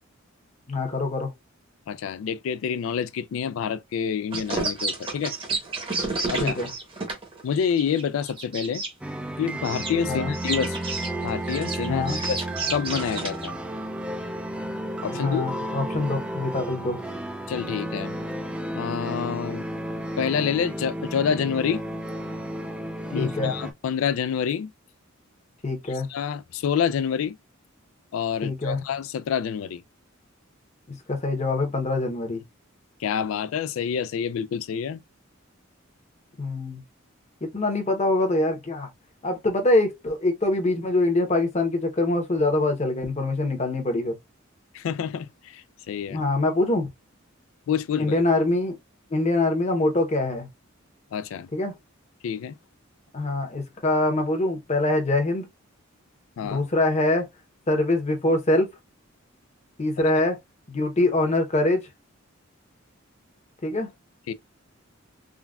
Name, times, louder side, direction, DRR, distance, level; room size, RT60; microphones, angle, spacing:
voice 1, 0.7-1.3 6.4-6.7 10.1-10.3 11.9-12.2 15.1-17.0 23.2-23.5 25.6-26.1 28.4-28.8 30.9-32.4 36.4-36.8 37.4-38.9 39.2-44.1 46.1-46.9 48.0-48.8 49.1-50.5 51.5-51.7 53.1-55.5 56.4-57.3 57.7-58.7 59.8-60.4 60.7-61.9 63.6-63.9, left 2 dB, 35° left, 0.8 m, -24 dB
voice 2, 1.9-5.3 6.3-6.5 7.4-8.8 9.4-10.8 11.2-12.4 12.7-13.6 15.0-15.5 17.5-18.1 18.7-19.7 20.2-21.8 23.1-24.7 26.1-27.4 28.1-29.8 33.0-35.0 44.7-46.2 47.7-48.1 51.1-51.5 52.2-52.6 56.4-56.6 64.3-64.4, left 7 dB, 75° left, 0.3 m, -27 dB
sound 1, 4.3-8.9 9.6-9.9 10.3-13.5, right 3 dB, 25° right, 0.8 m, -30 dB
sound 2, 9.0-23.7, right 1 dB, 5° right, 0.3 m, -32 dB
3.7 x 2.2 x 2.3 m
head